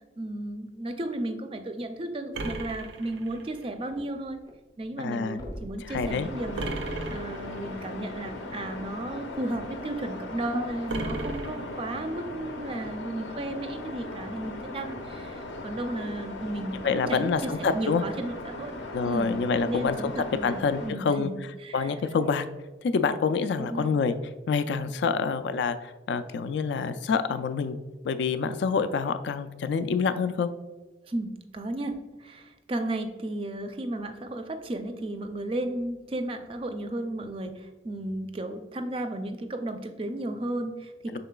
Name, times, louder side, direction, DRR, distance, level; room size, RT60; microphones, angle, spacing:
voice 1, 0.2-4.4 4.8-18.8 19.0-19.4 19.7-21.9 23.6-23.9 31.1-41.2, right 1 dB, 30° right, 7 dB, 0.4 m, -34 dB
sound 1, 2.3-3.7 6.6-7.7 10.9-12.2, right 2 dB, 85° right, 0.5 m, -35 dB
sound 2, 3.1-4.5 4.8-4.9 5.3-7.9 8.6-8.7, equal, 20° left, 0.5 m, -43 dB
voice 2, 5.0-5.4 5.8-6.3 16.8-18.0 18.9-20.1 20.4-21.3 21.7-22.4 22.8-24.1 24.5-27.8 28.0-30.5 41.1-41.2, left 5 dB, 70° left, 11 dB, 0.3 m, -27 dB
sound 3, 6.0-20.9, left 2 dB, 90° left, 0.7 m, -39 dB
5.6 x 3.8 x 2.2 m, 1.2 s
head